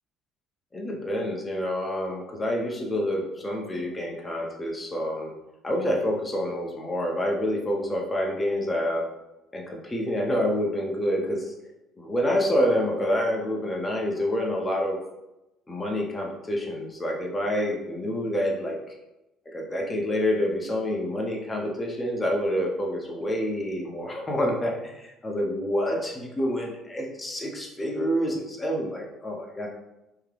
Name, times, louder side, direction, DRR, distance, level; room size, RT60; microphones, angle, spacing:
voice 1, 0.7-5.3 5.6-9.1 9.5-11.5 12.0-15.0 15.7-18.8 19.5-29.7, equal, 15° left, -1 dB, 0.7 m, -27 dB
3.5 x 2.8 x 3.3 m, 0.94 s
cardioid pair, 140°, 0 cm